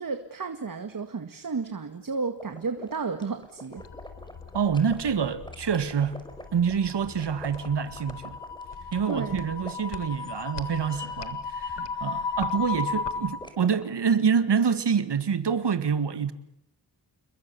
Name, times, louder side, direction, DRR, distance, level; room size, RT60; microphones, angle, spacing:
voice 1, 0.0-3.8 8.8-9.5, right 4 dB, 50° right, 1.9 m, -33 dB
sound 1, 2.4-5.0 5.5-10.6 10.9-11.3 11.9-12.5 13.4-13.8, left 1 dB, 10° left, 5.2 m, -46 dB
sound 2, 3.8-13.4, left 5 dB, 70° left, 2.0 m, -36 dB
voice 2, 4.5-6.2 6.5-8.4 8.9-16.3, right 6 dB, 70° right, 2.0 m, -26 dB
29.5 x 21.5 x 7.0 m
cardioid pair, 65°, 43 cm